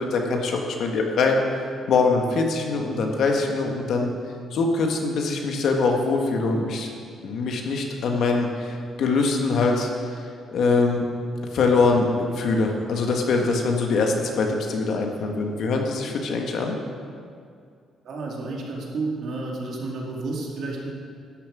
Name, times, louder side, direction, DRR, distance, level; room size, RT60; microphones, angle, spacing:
voice 1, 0.0-1.4 1.9-4.1 4.5-6.9 7.2-10.2 10.5-11.0 11.5-16.7, left 3 dB, 70° left, 2 dB, 1.6 m, -23 dB
voice 2, 18.0-20.9, right 3 dB, 70° right, -2 dB, 2.4 m, -31 dB
11.5 x 7.4 x 6.2 m, 2.3 s
cardioid pair, 90°, 0 cm